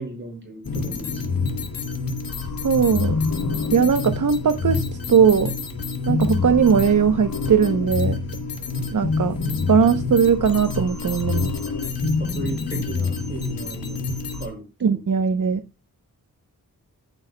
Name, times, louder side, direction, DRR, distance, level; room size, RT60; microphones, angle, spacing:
voice 1, 0.0-1.4 8.6-8.9 12.2-14.0 14.4-14.6 14.9-15.0, right 2 dB, 30° right, 2 dB, 5.6 m, -36 dB
sound 1, 0.6-14.5, left 4 dB, 75° left, 2.4 m, -26 dB
voice 2, 2.6-3.2 3.7-4.8 5.1-5.5 6.1-8.2 8.9-9.3 9.7-11.5 14.8-15.6, right 6 dB, 55° right, 8 dB, 0.9 m, -19 dB
14.5 x 10.0 x 2.3 m, 0.28 s
wide cardioid pair, 110°, 35 cm